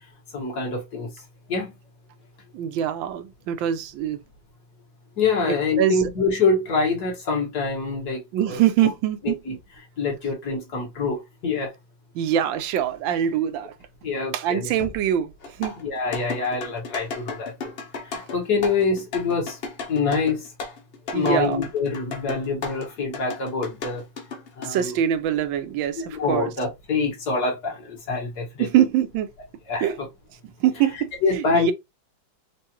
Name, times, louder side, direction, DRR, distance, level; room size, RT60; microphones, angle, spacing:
voice 1, 0.3-1.1 1.5-1.7 5.2-8.9 9.2-9.6 10.0-11.7 14.0-14.7 15.8-17.7 18.1-19.6 19.9-20.4 21.1-24.0 24.6-25.0 26.0-28.7 29.7-30.1 31.2-31.7, left 4 dB, 55° left, 2.0 m, -25 dB
voice 2, 2.5-4.2 5.8-6.1 8.3-9.3 12.1-13.7 14.3-15.3 15.6-15.7 21.1-21.6 24.6-26.5 28.6-29.3 29.8-30.0 30.6-31.7, right 10 dB, 80° right, 1.3 m, -23 dB
Knock, 14.8-15.7, left 2 dB, 35° left, 0.6 m, -42 dB
sound 1, 15.4-22.9 23.1-24.7, left 4 dB, 80° left, 0.5 m, -34 dB
4.6 x 2.5 x 2.9 m
omnidirectional pair, 2.1 m